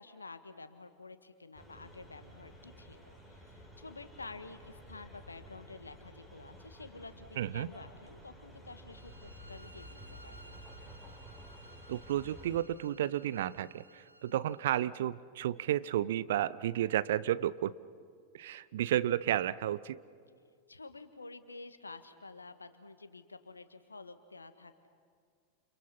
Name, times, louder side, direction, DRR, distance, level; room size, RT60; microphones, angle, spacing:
voice 1, 0.0-10.6 20.7-24.9, left 3 dB, 80° left, 11 dB, 1.6 m, -50 dB
sound 1, 1.5-12.6, equal, ahead, 5.4 m, -52 dB
voice 2, 7.4-7.7 11.9-17.7 18.3-20.0, right 12 dB, 55° right, 17 dB, 0.7 m, -32 dB
sound 2, 8.9-14.8, right 2 dB, 85° right, 1.0 m, -57 dB
30.0 x 29.5 x 5.8 m, 2.2 s
figure-of-eight pair, 90°, 0 cm